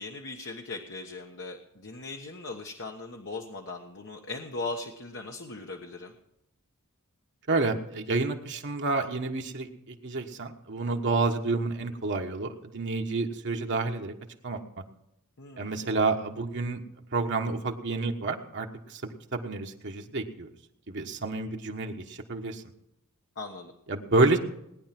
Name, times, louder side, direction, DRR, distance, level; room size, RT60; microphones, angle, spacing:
voice 1, 0.0-6.1 15.4-15.9 23.4-23.7, left 3 dB, 55° left, 2 dB, 1.3 m, -39 dB
voice 2, 7.5-14.1 14.4-14.6 15.6-16.8 17.1-20.5 20.9-22.6 23.9-24.4, right 3 dB, 55° right, 2 dB, 1.3 m, -29 dB
19.5 x 10.5 x 6.0 m, 0.81 s
head